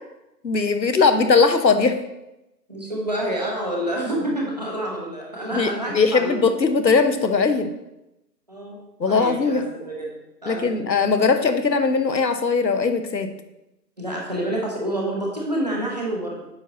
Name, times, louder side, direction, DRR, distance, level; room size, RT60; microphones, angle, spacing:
voice 1, 0.4-2.0 5.5-7.7 9.0-9.6 10.5-13.3, left 4 dB, 90° left, 8 dB, 1.0 m, -20 dB
voice 2, 2.7-6.3 8.5-8.8 9.1-10.9 14.0-16.5, right 1 dB, 25° right, -2 dB, 1.0 m, -28 dB
9.1 x 5.9 x 2.9 m, 0.91 s
figure-of-eight pair, 165°, 50 cm